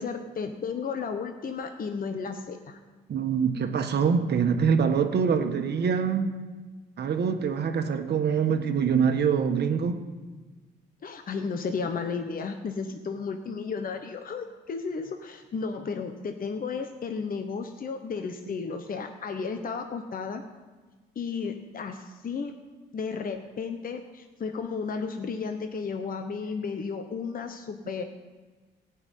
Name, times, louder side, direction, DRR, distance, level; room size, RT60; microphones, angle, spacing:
voice 1, 0.0-2.8 11.0-20.4 21.1-22.5 22.9-28.0, left 5 dB, 45° left, 6 dB, 1.1 m, -33 dB
voice 2, 3.1-6.4 7.0-10.0, right 6 dB, 55° right, 7 dB, 1.4 m, -24 dB
16.0 x 6.0 x 9.4 m, 1.3 s
cardioid pair, 90°, 20 cm